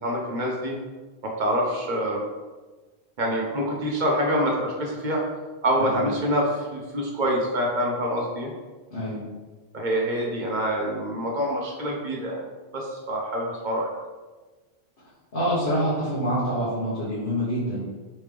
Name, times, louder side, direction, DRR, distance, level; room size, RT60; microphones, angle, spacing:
voice 1, 0.0-0.8 1.2-2.2 3.2-5.3 5.6-8.5 9.7-12.4 12.7-13.9, equal, 55° right, -1 dB, 0.7 m, -26 dB
voice 2, 8.9-9.2 15.3-17.8, equal, 55° left, -10 dB, 1.2 m, -26 dB
3.3 x 3.2 x 3.3 m, 1.3 s
omnidirectional pair, 1.1 m